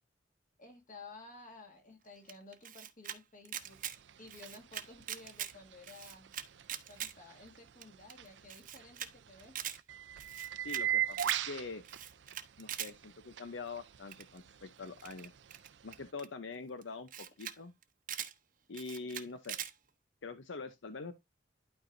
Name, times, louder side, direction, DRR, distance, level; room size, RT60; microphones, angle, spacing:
voice 1, 0.6-3.8 4.2-6.3 6.9-9.6, left 3 dB, 45° left, 2.2 m, -54 dB
Camera, 2.3-3.2 3.4-4.0 4.3-5.5 5.8-7.1 7.5-7.6 7.8-7.9 8.1-8.2 8.5-9.1 9.4-9.8 10.2-10.8 11.1-11.4 11.8-12.9 14.1-14.4 15.0-16.3 16.8-16.9 17.1-17.6 17.8-18.3 18.7-19.7, right 10 dB, 50° right, 0.8 m, -42 dB
sound 1, 3.6-16.1, right 10 dB, 70° right, 0.5 m, -42 dB
voice 2, 10.6-11.8 12.6-15.3 15.8-17.7 18.7-19.6 20.2-21.1, left 4 dB, 85° left, 0.7 m, -44 dB
12.0 x 4.7 x 2.6 m
head